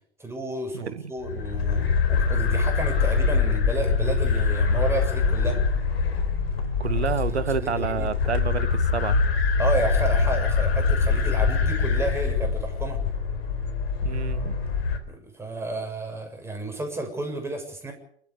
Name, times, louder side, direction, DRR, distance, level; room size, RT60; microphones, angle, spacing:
voice 1, 0.2-5.6 7.6-8.1 9.6-13.0 15.1-17.9, right 2 dB, 10° right, 6.8 m, -31 dB
voice 2, 0.7-1.1 6.8-9.2 14.0-14.6, right 7 dB, 75° right, 1.6 m, -29 dB
sound 1, 1.2-15.0, left 5 dB, 65° left, 4.2 m, -24 dB
28.0 x 13.5 x 8.1 m
figure-of-eight pair, 95°, 33 cm